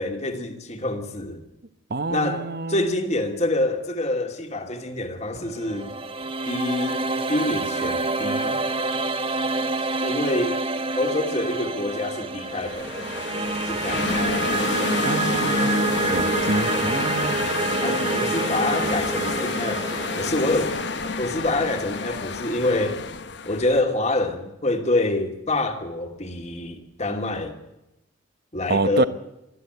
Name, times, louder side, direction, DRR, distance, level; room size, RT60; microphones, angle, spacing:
voice 1, 0.0-1.4 2.1-5.9 6.5-7.0 7.3-8.6 10.0-10.6 11.0-13.1 13.6-14.3 17.8-20.8 21.2-23.0 23.5-27.6 28.5-29.1, left 2 dB, 35° left, 2.7 m, -26 dB
voice 2, 1.9-3.0 15.0-15.7 16.1-17.4 28.7-29.0, right 3 dB, 55° right, 1.0 m, -26 dB
sound 1, 5.4-22.5, right 3 dB, 30° right, 1.1 m, -27 dB
sound 2, 12.5-23.8, left 4 dB, 65° left, 1.1 m, -29 dB
24.0 x 14.0 x 8.1 m
head